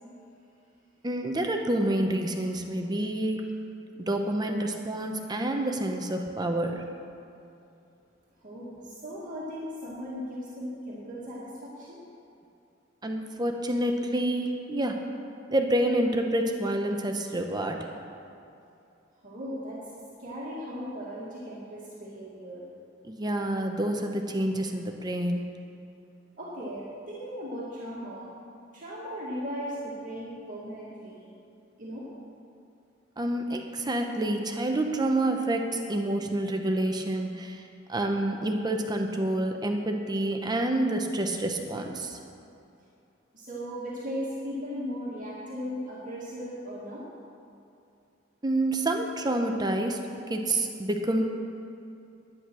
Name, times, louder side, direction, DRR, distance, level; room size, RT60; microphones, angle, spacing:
voice 1, 1.0-3.4 4.0-6.8 13.0-15.0 15.5-17.9 23.0-25.4 33.2-37.6 37.9-42.2 48.4-51.2, right 1 dB, 20° right, 4 dB, 0.8 m, -28 dB
voice 2, 8.4-12.0 19.2-19.9 20.2-22.6 26.4-28.2 28.7-31.3 31.8-32.1 43.3-47.1, equal, 45° right, -7 dB, 2.1 m, -37 dB
11.0 x 10.0 x 6.1 m, 2.6 s
head